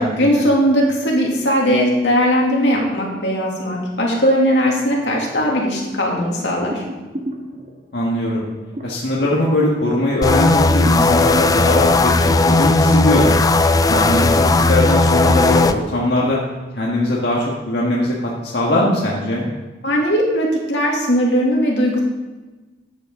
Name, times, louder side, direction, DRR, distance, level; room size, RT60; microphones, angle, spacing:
voice 1, 0.0-6.8 19.8-22.0, equal, 90° left, -2 dB, 2.6 m, -18 dB
sound 1, 5.6-10.2 10.5-12.4, equal, 45° right, 1.6 m, -34 dB
voice 2, 7.9-8.5 8.8-13.3 13.9-16.4 16.7-19.4, left 1 dB, 70° left, -4 dB, 1.6 m, -20 dB
sound 2, 10.2-15.7, left 2 dB, 20° left, 0.4 m, -15 dB
12.5 x 8.2 x 3.7 m, 1.2 s
head